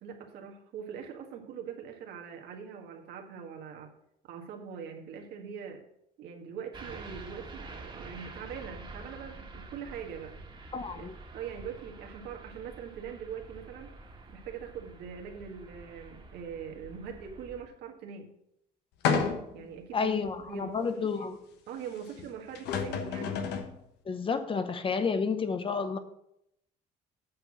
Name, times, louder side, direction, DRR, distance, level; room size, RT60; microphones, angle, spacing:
voice 1, 0.0-3.9 4.2-5.8 6.2-10.4 10.9-13.9 14.3-18.3 19.5-21.1 21.7-23.4, right 7 dB, 80° right, 2 dB, 1.6 m, -42 dB
sound 1, 6.7-17.6, right 3 dB, 30° right, 1.7 m, -47 dB
voice 2, 10.7-11.1 19.9-21.4 24.1-26.0, left 5 dB, 30° left, 10 dB, 0.8 m, -30 dB
sound 2, 19.0-19.7 20.3-20.4 22.2-22.3 22.5-23.7, left 6 dB, 85° left, 1.1 m, -30 dB
8.4 x 4.5 x 7.2 m, 0.78 s
cardioid pair, 110°, 17 cm